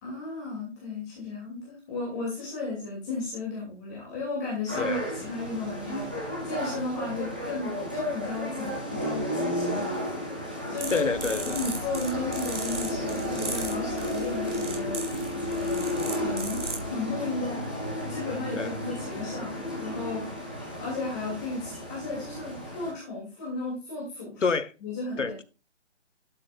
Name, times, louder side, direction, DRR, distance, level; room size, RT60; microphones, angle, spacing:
voice 1, 0.0-10.1 10.7-11.1 11.4-15.2 15.5-17.6 18.0-20.3 20.8-24.5 24.8-25.3, left 3 dB, 15° left, 2.7 m, -34 dB
sound 1, 4.7-22.9, equal, 10° right, 0.7 m, -33 dB
sound 2, 10.8-16.9, right 2 dB, 75° right, 4.6 m, -37 dB
voice 2, 10.9-11.6 18.5-18.7 24.4-24.7 25.2-25.4, left 4 dB, 90° left, 1.4 m, -28 dB
11.5 x 7.0 x 2.5 m
hypercardioid pair, 170°, 36 cm